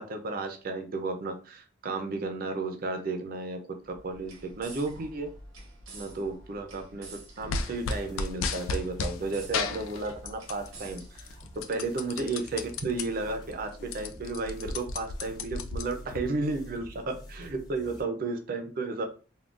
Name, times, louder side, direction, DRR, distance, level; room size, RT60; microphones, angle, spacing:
voice 1, 0.0-3.6 3.8-5.3 5.9-7.1 7.4-11.3 11.5-19.0, right 3 dB, 45° right, 5 dB, 0.4 m, -33 dB
sound 1, 3.8-12.0, right 2 dB, 80° right, 0.8 m, -49 dB
sound 2, 7.4-18.0, equal, 20° left, 0.6 m, -49 dB
sound 3, 7.5-9.2 9.5-10.7 11.0-13.0 13.5-13.6 13.8-16.2, left 4 dB, 90° left, 0.4 m, -33 dB
3.6 x 2.2 x 2.4 m, 0.36 s
head